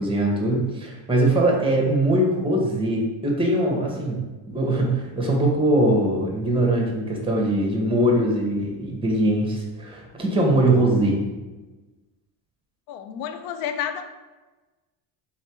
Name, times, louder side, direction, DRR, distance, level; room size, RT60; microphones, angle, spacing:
voice 1, 0.0-4.3 4.5-11.2, right 1 dB, 10° right, -1 dB, 1.3 m, -21 dB
voice 2, 12.9-14.0, left 9 dB, 75° left, 8 dB, 0.6 m, -30 dB
3.5 x 3.3 x 4.5 m, 1.2 s
supercardioid pair, 85°, 49 cm